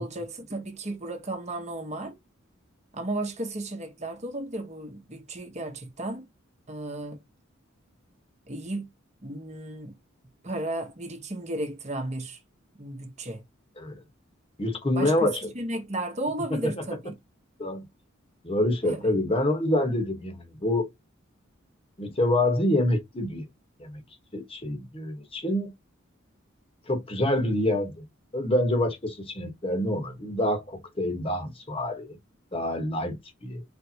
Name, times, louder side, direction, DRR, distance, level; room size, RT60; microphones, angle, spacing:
voice 1, 0.0-2.2 2.9-6.3 6.7-7.2 8.5-8.9 9.2-9.9 10.4-12.4 12.8-13.4 14.9-17.1 18.9-19.1, right 1 dB, 35° right, 1.1 m, -34 dB
voice 2, 14.6-15.5 16.6-16.7 17.6-17.8 18.4-20.9 22.0-23.5 23.8-24.0 24.3-25.7 26.9-28.0 28.3-32.2 32.5-33.6, left 1 dB, 25° left, 1.2 m, -26 dB
4.5 x 3.3 x 2.9 m
head